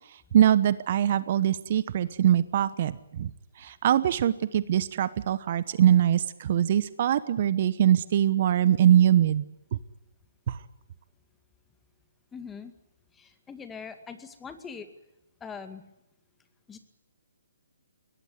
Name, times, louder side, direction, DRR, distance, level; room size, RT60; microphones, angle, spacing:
voice 1, 0.3-3.3 3.6-9.4 10.5-10.6, right 10 dB, 45° right, 16 dB, 1.1 m, -23 dB
voice 2, 12.3-12.7 13.1-14.9 15.4-15.8 16.7-16.8, left 6 dB, 10° left, 9 dB, 2.1 m, -42 dB
22.0 x 18.5 x 9.6 m, 0.88 s
figure-of-eight pair, 140°, 0 cm